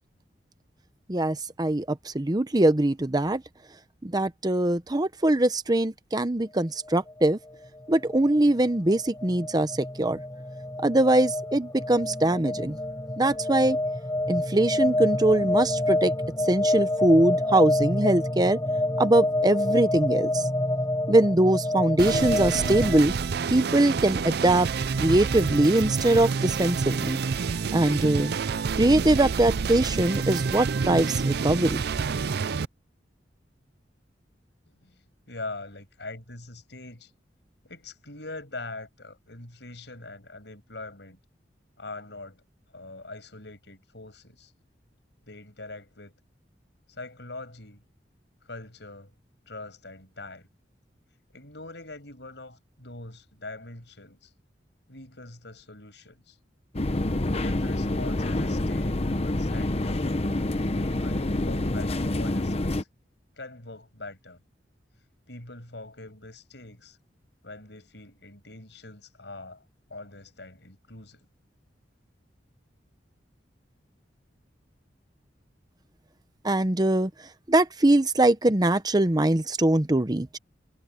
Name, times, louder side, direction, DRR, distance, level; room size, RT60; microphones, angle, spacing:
voice 1, 1.1-3.4 4.0-7.4 7.9-9.7 10.0-10.2 10.8-12.8 13.2-13.8 14.3-16.1 16.5-18.6 19.0-20.4 21.1-23.1 23.5-24.7 25.0-27.2 27.7-28.3 28.8-31.8 76.4-77.1 77.5-80.4, right 1 dB, 25° right, 0.9 m, -22 dB
sound 1, 6.9-23.0, left 1 dB, 20° left, 5.3 m, -28 dB
sound 2, 22.0-32.6, right 5 dB, 60° right, 0.5 m, -28 dB
voice 2, 34.7-37.1 37.6-41.2 41.8-42.4 42.7-44.5 45.3-46.2 46.9-47.8 48.5-49.1 49.5-50.5 51.3-54.3 54.9-56.4 57.4-60.1 60.8-62.9 63.4-64.4 65.3-67.0 67.4-69.6 69.9-71.3, left 2 dB, 75° left, 7.2 m, -43 dB
sound 3, 56.7-62.8, left 1 dB, 35° left, 1.0 m, -27 dB
head